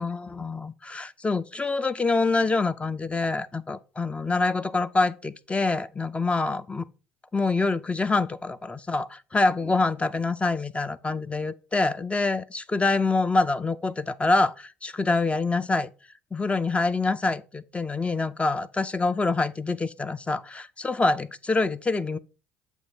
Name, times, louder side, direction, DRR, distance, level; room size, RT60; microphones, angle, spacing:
voice 1, 0.0-6.9 7.3-15.9 16.3-22.2, left 3 dB, 20° left, 0.5 m, -26 dB
8.0 x 2.7 x 5.8 m
hypercardioid pair, 60°, 7 cm